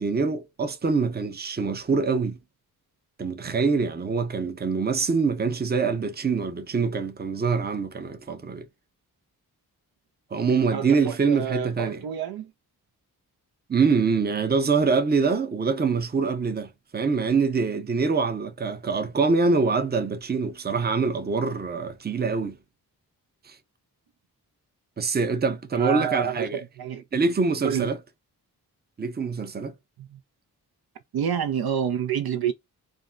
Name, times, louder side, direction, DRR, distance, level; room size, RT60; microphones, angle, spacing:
voice 1, 0.0-2.4 3.2-8.6 10.3-12.0 13.7-22.6 23.5-23.6 25.0-26.6 27.1-28.0 29.0-29.7, right 4 dB, 25° right, 0.6 m, -24 dB
voice 2, 10.7-12.5 25.7-26.5 26.8-27.0 27.6-27.9 30.0-30.2 31.1-32.5, right 8 dB, 65° right, 0.6 m, -28 dB
3.5 x 2.1 x 2.4 m
cardioid pair, 45°, 41 cm